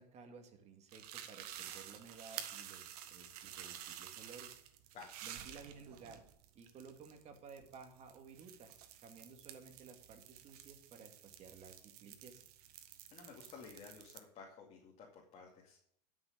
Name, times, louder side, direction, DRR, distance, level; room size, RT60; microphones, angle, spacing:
voice 1, 0.0-4.5 5.2-6.2 6.5-8.7 9.0-12.4, right 5 dB, 35° right, 6 dB, 2.2 m, -55 dB
sound 1, 0.9-14.2, right 10 dB, 70° right, 1.5 m, -51 dB
voice 2, 12.8-15.8, left 5 dB, 35° left, -1 dB, 2.5 m, -54 dB
11.5 x 6.6 x 6.7 m, 0.68 s
supercardioid pair, 125°, 20 cm